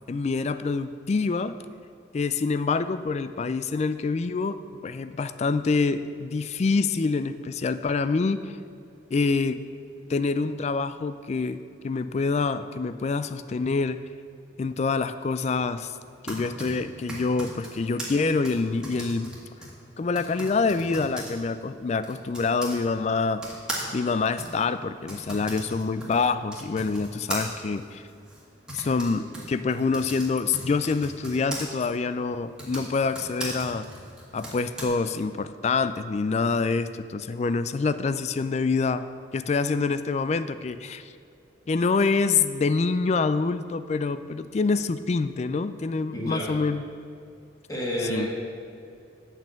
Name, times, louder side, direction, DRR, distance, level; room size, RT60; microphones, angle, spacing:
voice 1, 0.1-1.5 2.1-4.6 4.8-8.6 9.1-9.6 10.1-14.0 14.6-16.0 16.2-19.3 20.0-23.4 23.9-28.0 28.7-33.8 34.3-39.0 39.3-41.1 41.7-46.8 48.1-48.3, left 4 dB, 35° left, 13 dB, 0.3 m, -26 dB
Typing, 16.0-22.8 23.4-31.6 32.4-34.8, right 1 dB, 5° right, 1.5 m, -39 dB
voice 2, 46.1-46.5 47.7-48.6, equal, 20° left, -3 dB, 1.5 m, -30 dB
7.4 x 5.6 x 7.6 m, 2.5 s
head